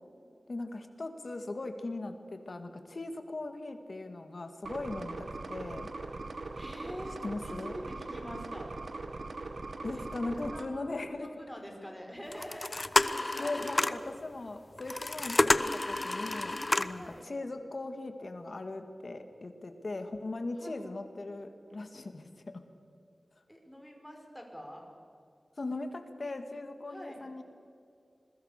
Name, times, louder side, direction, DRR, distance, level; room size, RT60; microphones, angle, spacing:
voice 1, 0.5-5.9 7.2-7.8 9.8-11.4 13.1-22.6 25.6-27.4, left 2 dB, 60° left, 7 dB, 2.1 m, -39 dB
sound 1, 4.6-10.7, right 3 dB, 80° right, 1.8 m, -41 dB
voice 2, 6.6-7.2 7.4-8.7 9.9-12.8 13.1-14.0 16.9-17.3 20.6-20.8 23.5-24.9 26.9-27.2, equal, ahead, 1 dB, 5.4 m, -45 dB
sound 2, 12.3-14.1 14.8-17.1, left 2 dB, 35° left, 0.8 m, -29 dB
27.0 x 22.0 x 6.8 m, 2.5 s
wide cardioid pair, 85°, 0 cm